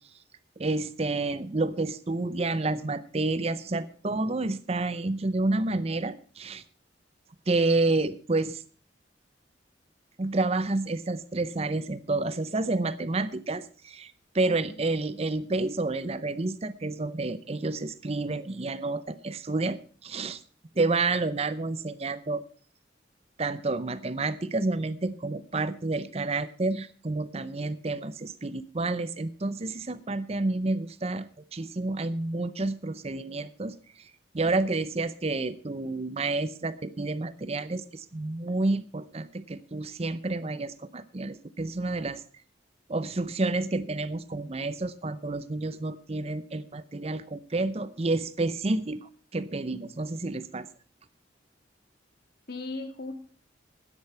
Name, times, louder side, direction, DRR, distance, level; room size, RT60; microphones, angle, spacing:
voice 1, 0.6-6.6 7.5-8.6 10.2-20.4 20.8-22.4 23.4-33.8 34.3-42.2 42.9-50.7, right 2 dB, 35° right, 15 dB, 0.6 m, -29 dB
voice 2, 14.4-14.8 52.5-53.1, left 2 dB, 60° left, 8 dB, 2.0 m, -39 dB
13.0 x 9.8 x 5.6 m, 0.42 s
head